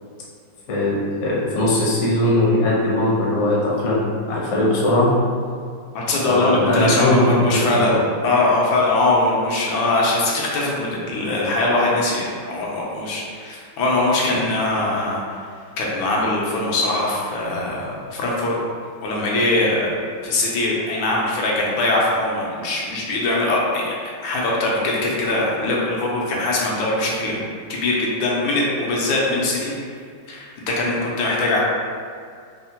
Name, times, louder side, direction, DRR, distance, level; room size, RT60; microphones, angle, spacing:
voice 1, 0.7-5.1 6.2-7.9, left 1 dB, 60° left, -6 dB, 0.8 m, -20 dB
voice 2, 5.9-7.9 8.2-15.4 15.8-18.5 19.0-19.9 20.2-23.9 24.2-27.4 27.7-29.7 30.3-31.6, left 2 dB, 85° left, -4 dB, 1.4 m, -21 dB
3.6 x 2.1 x 2.8 m, 2.2 s
omnidirectional pair, 2.1 m